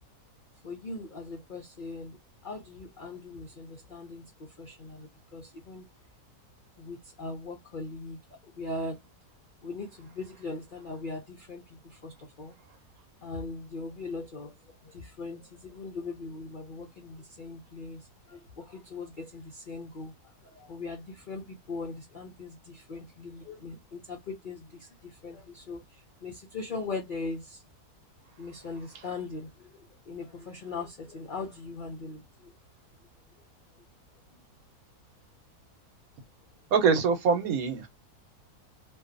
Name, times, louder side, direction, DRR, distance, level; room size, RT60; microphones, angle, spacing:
voice 1, 0.6-5.9 6.8-8.2 8.5-9.1 9.6-12.6 13.2-27.6 28.4-32.5, left 3 dB, 70° left, 0.4 m, -40 dB
voice 2, 36.7-37.9, right 5 dB, 70° right, 1.1 m, -24 dB
2.6 x 2.3 x 2.4 m
omnidirectional pair, 1.7 m